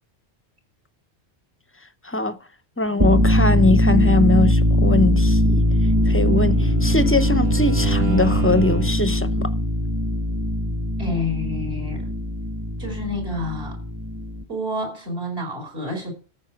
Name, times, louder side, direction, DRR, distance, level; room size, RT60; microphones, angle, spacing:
voice 1, 2.0-2.4 2.8-5.6 6.1-9.5, left 2 dB, 15° left, 0.5 m, -21 dB
sound 1, 2.9-14.4, equal, 20° right, 1.1 m, -20 dB
Bowed string instrument, 5.5-9.1, right 5 dB, 45° right, 1.5 m, -29 dB
voice 2, 11.0-12.1 12.8-13.8 14.5-16.1, left 1 dB, 65° right, 5.0 m, -29 dB
14.0 x 5.3 x 7.7 m
omnidirectional pair, 1.1 m